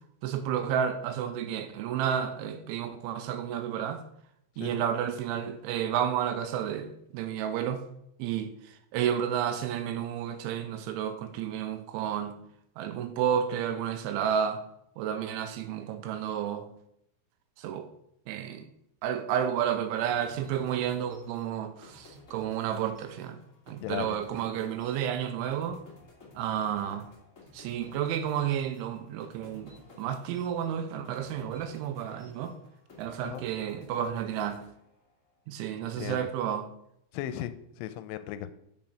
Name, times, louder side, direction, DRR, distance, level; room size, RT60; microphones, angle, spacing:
voice 1, 0.2-4.0 4.6-7.8 8.2-12.4 12.8-14.6 15.0-16.7 17.6-17.9 18.3-18.7 19.0-23.4 23.7-25.8 26.4-27.1 27.5-32.5 33.0-34.7 35.5-36.7, right 9 dB, 85° right, 3.0 m, -31 dB
sound 1, 20.0-35.3, left 2 dB, 60° left, 0.8 m, -54 dB
voice 2, 23.8-24.4 33.2-33.4 35.8-36.3 37.1-38.5, left 11 dB, 85° left, 3.0 m, -37 dB
7.8 x 7.2 x 5.6 m
omnidirectional pair, 5.7 m